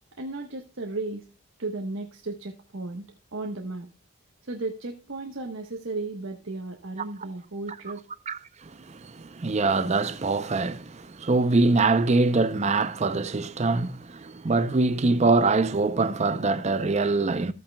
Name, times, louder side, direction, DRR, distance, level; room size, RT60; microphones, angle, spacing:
voice 1, 0.2-1.2 1.6-3.1 3.3-3.9 4.5-8.0, right 2 dB, 70° right, 1.2 m, -34 dB
voice 2, 8.3-17.5, right 3 dB, 30° right, 0.5 m, -24 dB
14.0 x 8.7 x 2.2 m
head